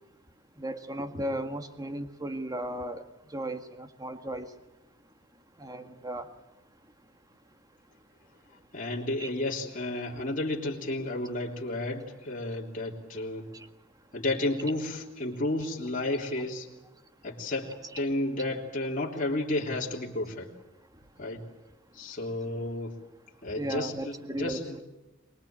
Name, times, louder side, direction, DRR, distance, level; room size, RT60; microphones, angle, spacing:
voice 1, 0.6-3.0 3.3-4.5 5.6-6.3 9.2-9.3 13.5-13.7 23.5-24.8, right 1 dB, 20° right, 7 dB, 1.8 m, -35 dB
voice 2, 8.7-13.4 14.1-16.7 17.2-20.5 21.2-21.4 21.9-23.0 23.4-24.8, left 2 dB, 45° left, -2 dB, 3.3 m, -32 dB
24.0 x 21.5 x 8.9 m, 1.0 s
head